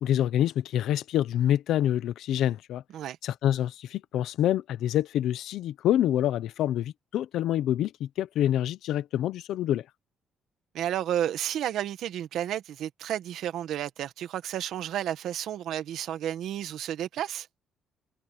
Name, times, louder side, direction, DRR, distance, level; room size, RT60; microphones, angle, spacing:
voice 1, 0.0-2.8 3.2-9.8, left 11 dB, 70° left, 1.0 m, -26 dB
voice 2, 10.7-17.5, right 11 dB, 65° right, 1.9 m, -32 dB
cardioid pair, 150°, 0 cm